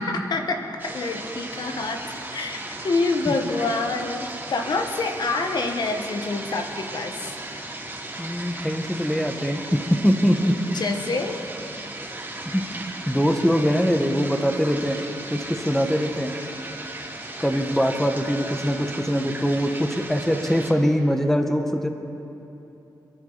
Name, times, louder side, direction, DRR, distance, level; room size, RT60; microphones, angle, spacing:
voice 1, 0.0-2.0 2.3-7.1 10.7-11.4, left 3 dB, 70° left, 4 dB, 1.4 m, -27 dB
sound 1, 0.8-20.7, right 2 dB, 25° right, 2.8 m, -36 dB
voice 2, 8.2-9.6 9.9-10.5 12.5-12.6 13.1-15.0 15.3-16.3 17.4-21.9, equal, 5° left, 5 dB, 1.5 m, -22 dB
27.5 x 11.0 x 4.1 m, 3.0 s
cardioid pair, 60°, 8 cm